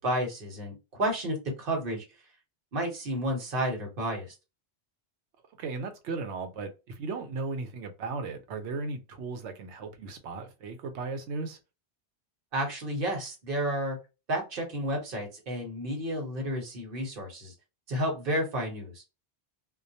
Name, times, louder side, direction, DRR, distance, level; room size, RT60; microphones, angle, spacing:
voice 1, 0.0-2.0 2.7-4.3 12.5-14.0 14.3-17.5 17.9-19.0, right 1 dB, 55° right, 1.1 m, -31 dB
voice 2, 5.6-11.6, right 3 dB, 80° right, 0.9 m, -36 dB
2.3 x 2.1 x 2.6 m
omnidirectional pair, 1.1 m